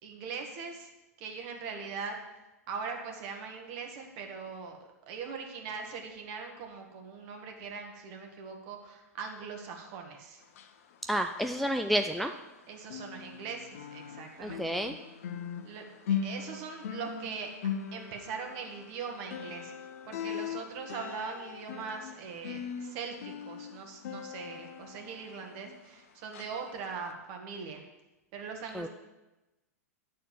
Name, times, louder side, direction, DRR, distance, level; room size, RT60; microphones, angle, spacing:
voice 1, 0.0-0.9 1.2-2.2 2.7-4.8 5.1-10.4 12.7-14.8 15.6-17.5 17.9-19.7 20.0-27.8 28.3-28.9, right 5 dB, 45° right, 3 dB, 1.8 m, -41 dB
sound 1, 10.4-12.6 12.8-26.0 26.3-26.6 27.0-27.1, left 7 dB, 60° left, 0.8 m, -40 dB
voice 2, 11.1-12.3 14.4-15.0 28.7-28.9, equal, ahead, 5 dB, 0.4 m, -30 dB
9.9 x 4.3 x 7.3 m, 1.0 s
hypercardioid pair, 105°, 9 cm